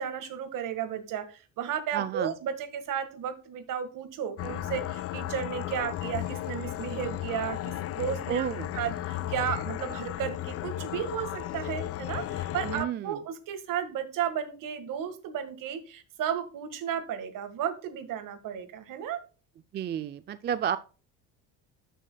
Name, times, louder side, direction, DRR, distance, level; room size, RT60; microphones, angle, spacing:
voice 1, 0.0-8.4 8.7-19.2, right 9 dB, 60° right, 10 dB, 1.7 m, -34 dB
voice 2, 1.9-2.3 8.3-8.7 12.6-13.2 19.7-20.8, right 9 dB, 30° right, 12 dB, 0.4 m, -31 dB
sound 1, 4.4-12.8, left 13 dB, 40° left, 0.4 m, -34 dB
13.0 x 6.4 x 2.3 m, 0.35 s
supercardioid pair, 85°, 36 cm